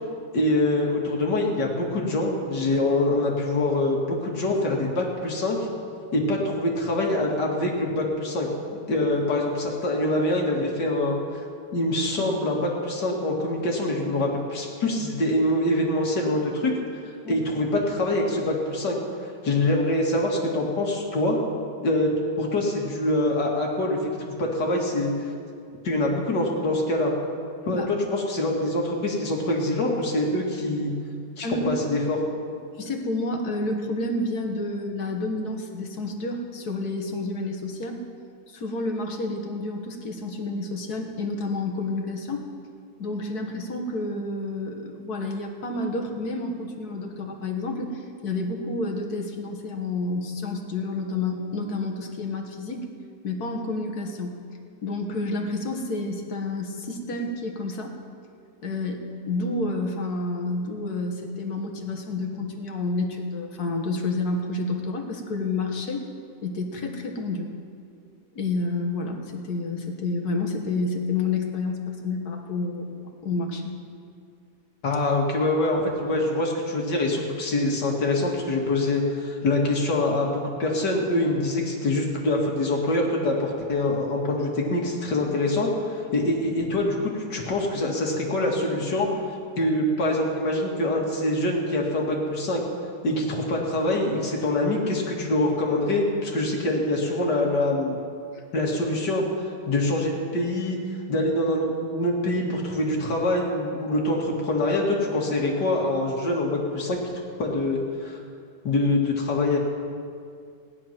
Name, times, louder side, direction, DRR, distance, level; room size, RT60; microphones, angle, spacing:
voice 1, 0.3-5.6 6.1-8.5 8.9-11.2 11.7-16.7 17.3-19.0 19.2-21.4 21.8-22.1 22.4-24.1 24.4-25.1 25.8-27.1 27.7-30.9 31.4-32.2 74.8-89.1 89.6-92.6 93.0-98.0 98.5-99.2 99.7-100.8 101.1-107.1 107.4-108.2 108.6-109.6, left 1 dB, 90° left, -1 dB, 2.7 m, -24 dB
voice 2, 32.8-38.0 38.5-42.5 43.0-52.9 53.2-54.4 54.8-57.9 58.6-66.1 66.4-67.5 68.4-73.7 98.3-98.4, left 2 dB, 70° left, 3 dB, 2.0 m, -29 dB
17.5 x 10.5 x 6.0 m, 2.3 s
omnidirectional pair, 1.8 m